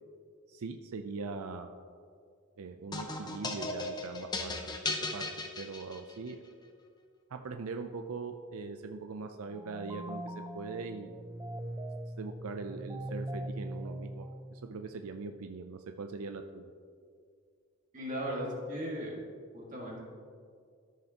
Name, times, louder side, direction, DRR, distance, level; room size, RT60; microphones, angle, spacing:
voice 1, 0.5-1.7 2.6-4.6 5.1-6.4 7.3-11.2 12.2-16.7, right 4 dB, 90° right, 6 dB, 0.5 m, -41 dB
sound 1, 2.9-6.3, left 2 dB, 20° left, 0.7 m, -36 dB
sound 2, 9.5-14.9, right 1 dB, 15° right, 0.3 m, -41 dB
voice 2, 17.9-19.1 19.5-20.0, equal, 40° right, -3 dB, 1.9 m, -37 dB
13.0 x 6.6 x 2.9 m, 2.2 s
head